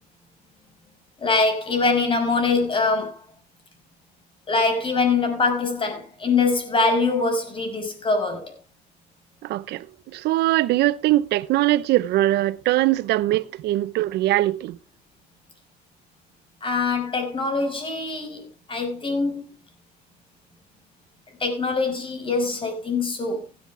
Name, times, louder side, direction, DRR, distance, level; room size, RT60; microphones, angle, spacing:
voice 1, 1.2-3.2 4.5-8.5 16.6-19.4 21.4-23.4, left 3 dB, 30° left, 5.8 m, -23 dB
voice 2, 9.4-9.9 10.1-14.8, right 16 dB, 80° right, 0.8 m, -21 dB
16.0 x 11.0 x 3.4 m
cardioid pair, 110°, 17 cm